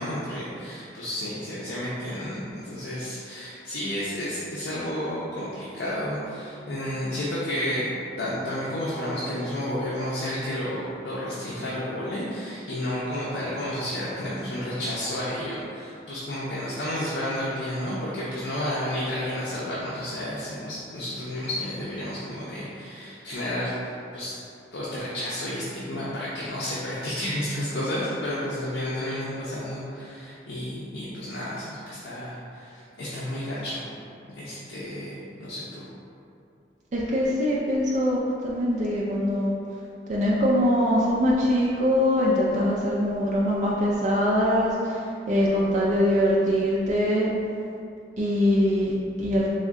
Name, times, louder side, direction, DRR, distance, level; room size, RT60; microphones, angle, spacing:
voice 1, 0.0-7.9 8.2-24.4 24.7-33.8 34.4-35.9, left 1 dB, 75° left, -8 dB, 0.6 m, -31 dB
voice 2, 36.9-39.5 40.1-47.3 48.2-49.5, equal, 40° right, -6 dB, 0.4 m, -23 dB
3.6 x 2.1 x 3.5 m, 2.6 s
head